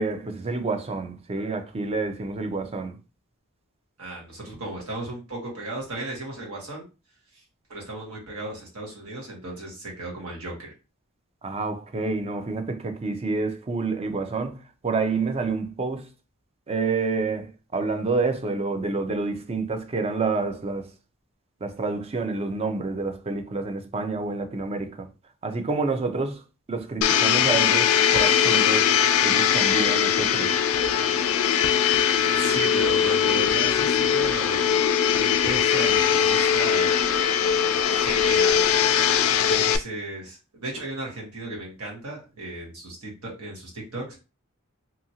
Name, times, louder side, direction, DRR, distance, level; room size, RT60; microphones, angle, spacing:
voice 1, 0.0-3.0 11.4-14.6 14.8-16.1 16.7-20.9 21.6-25.1 25.4-26.4 26.7-28.9 29.2-30.5, right 3 dB, 30° right, 0.4 m, -28 dB
voice 2, 4.0-6.8 7.3-7.4 7.7-10.7 32.4-34.6 35.2-36.9 37.8-38.7 39.4-44.2, right 2 dB, 80° right, 1.3 m, -35 dB
Domestic sounds home sounds, 27.0-39.8, left 8 dB, 65° left, 0.3 m, -21 dB
2.8 x 2.4 x 2.8 m
head